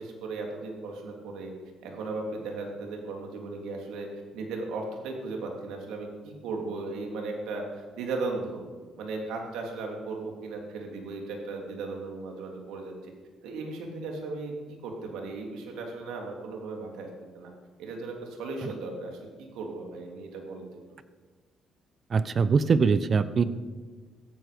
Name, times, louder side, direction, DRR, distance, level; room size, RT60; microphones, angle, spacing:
voice 1, 0.0-1.5 1.8-4.1 4.3-8.6 9.0-13.1 13.4-17.5 17.8-20.7, right 3 dB, 85° right, 1 dB, 3.2 m, -36 dB
voice 2, 22.1-23.4, right 5 dB, 45° right, 14 dB, 0.9 m, -22 dB
16.0 x 15.5 x 5.3 m, 1.4 s
cardioid pair, 85°, 0 cm